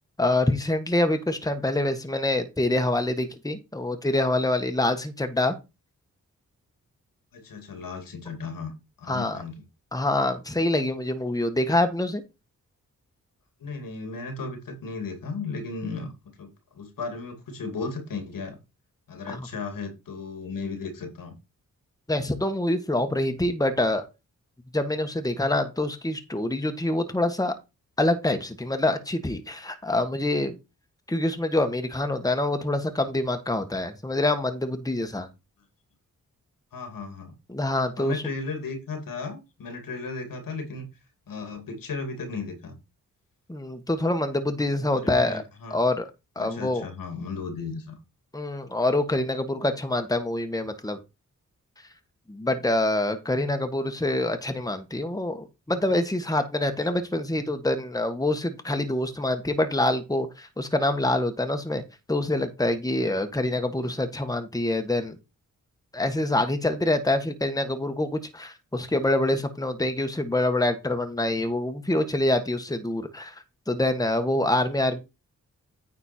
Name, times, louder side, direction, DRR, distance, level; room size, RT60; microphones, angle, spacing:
voice 1, 0.2-5.6 9.1-9.4 9.9-12.2 19.3-19.5 22.1-24.0 24.7-27.5 28.0-30.5 31.1-35.3 37.5-38.2 43.5-45.4 45.7-46.1 46.3-46.9 48.3-51.0 52.3-61.8 62.1-65.2 65.9-75.0, left 1 dB, 10° left, 7 dB, 1.4 m, -26 dB
voice 2, 7.3-9.6 13.6-16.1 16.4-18.6 19.1-21.3 36.7-37.3 38.0-40.9 41.3-42.7 44.9-45.8 46.4-47.9 65.0-65.1, left 4 dB, 80° left, 5 dB, 2.5 m, -35 dB
9.4 x 4.4 x 4.4 m, 0.26 s
cardioid pair, 60°, 33 cm